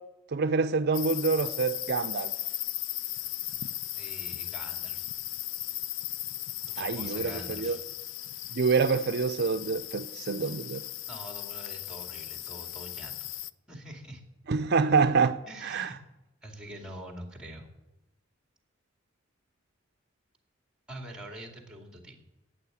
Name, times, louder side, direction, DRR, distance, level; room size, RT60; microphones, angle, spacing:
voice 1, 0.3-2.3 6.8-7.8 8.5-10.8 14.5-15.4 15.6-15.9, right 4 dB, 55° right, 9 dB, 0.5 m, -26 dB
sound 1, 0.9-13.5, left 13 dB, 70° left, 0.4 m, -37 dB
voice 2, 4.0-5.1 6.7-7.8 11.1-13.3 13.7-14.2 15.5-16.0 16.4-17.7 20.9-22.2, right 1 dB, 5° right, 2 dB, 2.4 m, -44 dB
11.5 x 8.9 x 8.5 m, 0.95 s
head